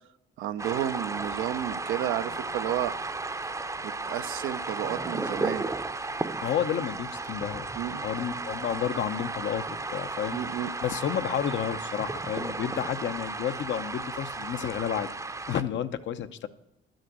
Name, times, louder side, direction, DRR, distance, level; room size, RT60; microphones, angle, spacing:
voice 1, 0.4-3.0 3.8-5.7 7.8-8.1 10.3-10.7, right 12 dB, 90° right, 12 dB, 0.6 m, -32 dB
sound 1, 0.6-15.6, right 3 dB, 15° right, 0.6 m, -34 dB
voice 2, 6.4-7.7 7.9-10.4 10.8-15.1 15.5-16.5, left 9 dB, 70° left, 10 dB, 0.8 m, -31 dB
11.0 x 6.5 x 7.9 m, 0.84 s
cardioid pair, 90°, 20 cm